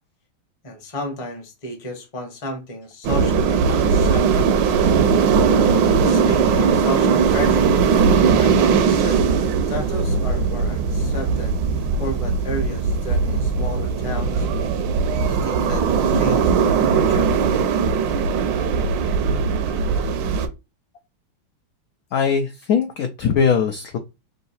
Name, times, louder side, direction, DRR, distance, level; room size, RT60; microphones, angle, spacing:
voice 1, 0.6-4.7 6.0-7.8 8.3-9.2 9.7-14.5 15.2-17.3, left 1 dB, 25° left, 0.7 m, -32 dB
sound 1, 3.0-20.5, right 5 dB, 70° right, 1.2 m, -19 dB
voice 2, 22.1-24.0, left 6 dB, 80° left, 0.8 m, -21 dB
3.8 x 2.6 x 4.2 m
omnidirectional pair, 2.2 m